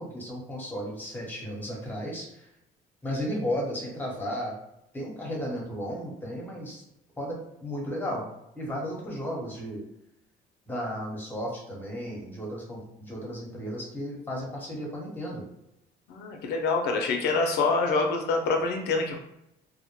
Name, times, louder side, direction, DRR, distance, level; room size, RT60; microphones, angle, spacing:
voice 1, 0.0-2.4 3.0-4.5 4.9-6.8 7.2-8.2 8.5-9.8 10.7-15.4, equal, 10° left, -3 dB, 0.9 m, -34 dB
voice 2, 16.1-19.2, left 3 dB, 75° left, 2 dB, 0.4 m, -26 dB
2.1 x 2.1 x 2.9 m, 0.82 s
cardioid pair, 110°, 17 cm